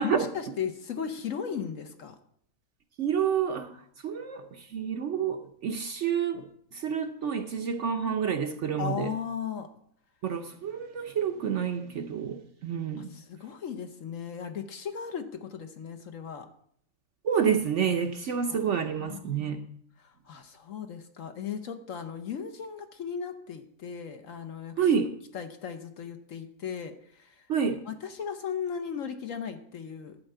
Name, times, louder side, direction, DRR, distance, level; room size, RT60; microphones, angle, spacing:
voice 1, 0.0-2.2 8.8-9.7 13.0-16.5 18.5-19.6 20.0-25.1 25.3-30.2, left 7 dB, 60° left, 1.0 m, -37 dB
voice 2, 3.0-3.7 4.0-6.5 6.7-9.1 10.2-13.2 17.2-19.6 24.8-25.1 27.5-27.8, right 7 dB, 55° right, 0.9 m, -28 dB
11.5 x 4.6 x 7.7 m
omnidirectional pair, 1.7 m